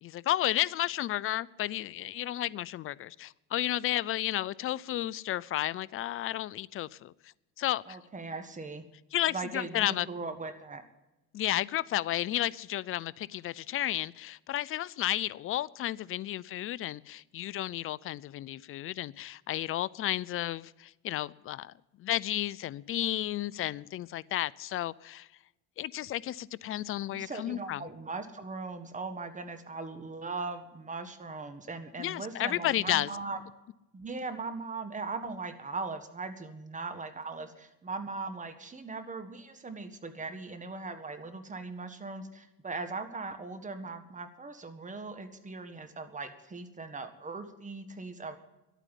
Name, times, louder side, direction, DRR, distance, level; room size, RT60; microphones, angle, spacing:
voice 1, 0.0-7.1 7.6-8.0 9.1-10.1 11.3-25.3 25.8-27.8 32.0-33.1, left 13 dB, 35° left, 0.4 m, -32 dB
voice 2, 7.9-8.8 9.3-10.8 27.1-33.4 33.9-48.4, right 3 dB, 20° right, 1.6 m, -39 dB
11.5 x 9.1 x 9.9 m
supercardioid pair, 105°, 38 cm